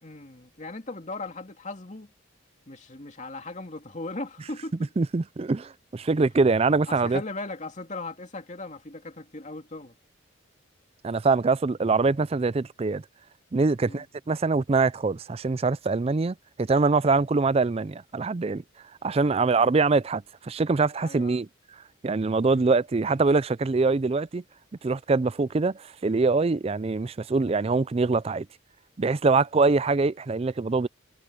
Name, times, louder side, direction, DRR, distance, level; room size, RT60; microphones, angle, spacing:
voice 1, 0.0-2.1 2.7-4.9 6.9-10.0 13.8-14.1 19.3-19.6 21.0-21.5 22.5-22.8, left 2 dB, 40° left, 2.5 m, -38 dB
voice 2, 5.0-7.2 11.0-13.0 13.5-18.6 19.0-21.5 22.0-24.4 24.8-28.5 29.0-30.9, right 3 dB, 30° right, 0.4 m, -24 dB
head